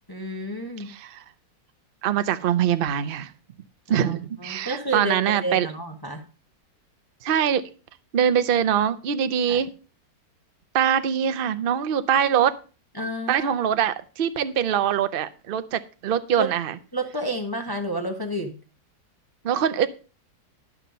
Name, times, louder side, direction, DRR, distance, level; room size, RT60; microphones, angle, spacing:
voice 1, 0.1-0.9 3.9-5.2 5.4-6.2 9.5-9.6 12.9-13.7 16.4-16.5 16.9-18.5, right 1 dB, 15° left, 3 dB, 1.0 m, -30 dB
voice 2, 0.9-1.2 2.0-3.3 3.9-5.7 7.2-7.6 8.1-9.7 10.7-12.5 13.3-16.8 19.4-19.9, right 9 dB, 70° right, 11 dB, 0.5 m, -23 dB
12.0 x 5.9 x 5.2 m, 0.35 s
omnidirectional pair, 1.9 m